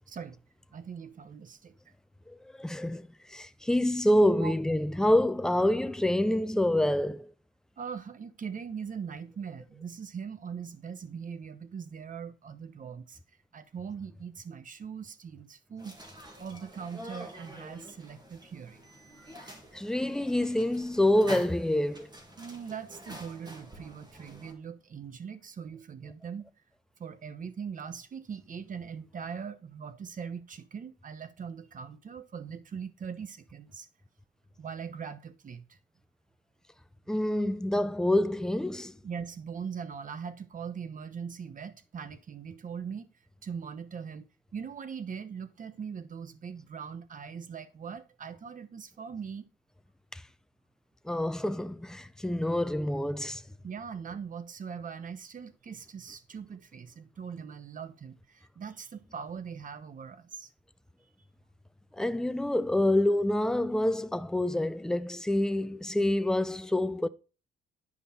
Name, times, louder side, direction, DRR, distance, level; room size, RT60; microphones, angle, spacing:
voice 1, 0.1-0.4 0.7-1.7 4.4-4.5 7.8-13.2 13.5-16.0 16.4-18.8 22.4-26.4 27.0-33.9 34.6-35.8 39.0-43.1 43.4-49.5 53.6-60.5, right 6 dB, 40° right, 1.0 m, -41 dB
voice 2, 2.3-7.3 19.7-22.1 37.1-39.0 50.1-50.2 51.0-53.4 61.9-67.1, left 1 dB, 5° left, 0.5 m, -27 dB
sound 1, 15.8-24.5, right 1 dB, 20° right, 2.4 m, -47 dB
9.7 x 5.2 x 4.3 m
cardioid pair, 90°, 20 cm